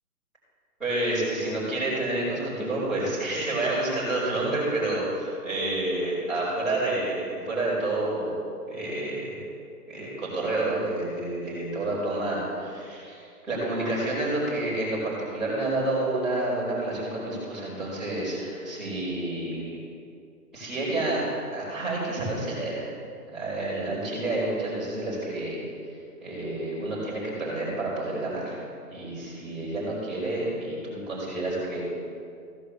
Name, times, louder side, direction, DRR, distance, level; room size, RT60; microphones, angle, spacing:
voice 1, 0.8-8.3 8.7-9.4 9.9-19.7 20.5-21.2 21.5-22.9 23.3-25.6 26.2-28.6 28.9-31.8, right 2 dB, ahead, -15 dB, 3.3 m, -29 dB
15.5 x 5.3 x 6.6 m, 2.4 s
hypercardioid pair, 175°, 47 cm